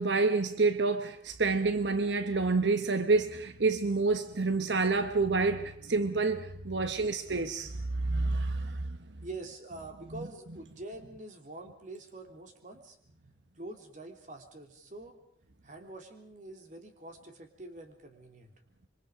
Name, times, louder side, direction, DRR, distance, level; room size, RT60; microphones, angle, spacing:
voice 1, 0.0-9.0, right 3 dB, 85° right, 1.1 m, -28 dB
voice 2, 9.2-13.0 13.6-15.2 15.6-18.5, right 2 dB, 45° right, 3.2 m, -45 dB
26.5 x 24.0 x 5.1 m
head